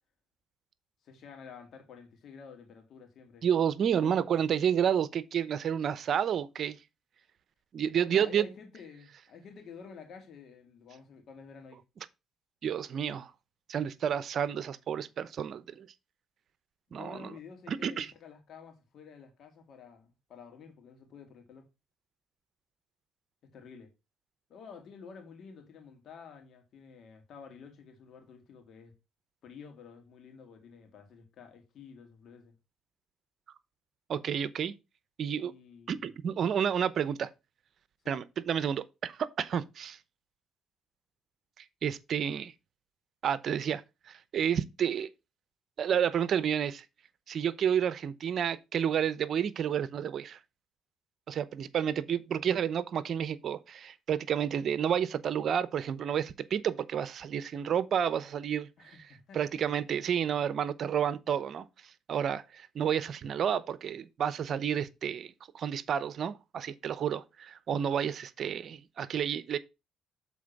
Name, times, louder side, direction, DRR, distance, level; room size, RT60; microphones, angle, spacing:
voice 1, 1.0-3.5 4.0-4.3 7.9-11.8 16.9-21.7 23.5-23.9 24.5-28.9 29.4-32.5 35.4-36.0 38.0-38.2 58.8-59.4, left 6 dB, 65° left, 2.7 m, -50 dB
voice 2, 3.4-6.8 7.7-8.5 12.6-13.3 13.7-15.9 16.9-17.3 17.7-18.1 34.1-34.7 35.2-35.5 35.9-37.3 38.1-40.0 41.6-42.5 43.2-43.8 44.1-45.1 45.8-46.8 47.3-50.4 51.3-58.9 59.3-61.6 62.1-69.6, right 8 dB, 60° right, 0.7 m, -30 dB
7.2 x 4.2 x 5.9 m
supercardioid pair, 65°, 0 cm